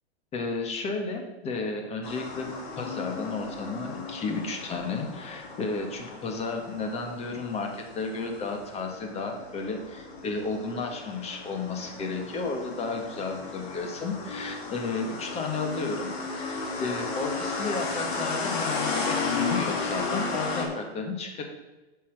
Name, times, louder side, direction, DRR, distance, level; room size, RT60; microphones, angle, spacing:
voice 1, 0.3-2.5 2.8-21.4, left 3 dB, 20° left, 3 dB, 1.5 m, -33 dB
sound 1, 2.0-20.6, left 4 dB, 50° left, 2.4 m, -34 dB
8.2 x 6.0 x 6.5 m, 1.1 s
hypercardioid pair, 140°, 33 cm